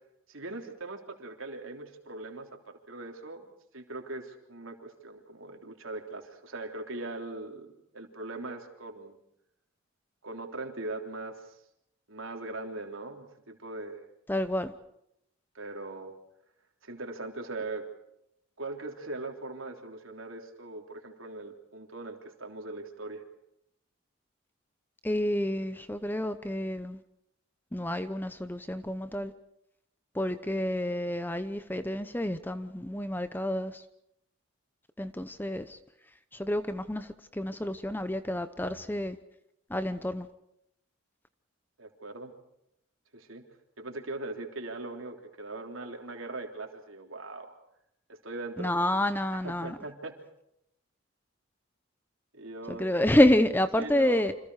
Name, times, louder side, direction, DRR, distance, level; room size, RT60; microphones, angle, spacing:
voice 1, 0.3-3.4 3.7-9.2 10.2-11.6 12.1-14.0 15.5-16.2 16.8-17.8 18.6-23.2 41.8-42.3 43.1-43.4 43.8-47.6 48.1-48.8 49.3-50.2 52.3-52.9 53.8-54.3, right 2 dB, 70° right, 3.5 m, -40 dB
voice 2, 14.3-14.7 25.0-27.0 27.7-29.3 30.1-33.8 35.0-35.8 36.3-39.2 39.7-40.3 48.6-49.8 52.7-54.3, left 1 dB, 10° left, 0.8 m, -28 dB
28.5 x 26.5 x 4.9 m
head